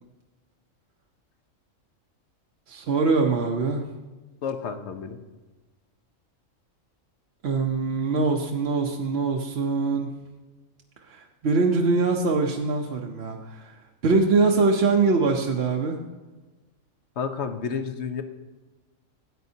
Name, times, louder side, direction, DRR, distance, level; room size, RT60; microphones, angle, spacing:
voice 1, 2.7-3.8 7.4-10.1 11.1-13.7 14.0-16.0, right 4 dB, 55° right, 1 dB, 0.9 m, -23 dB
voice 2, 4.4-5.2 17.2-18.2, left 6 dB, 60° left, 8 dB, 1.0 m, -30 dB
13.5 x 9.1 x 2.7 m, 1.2 s
omnidirectional pair, 1.3 m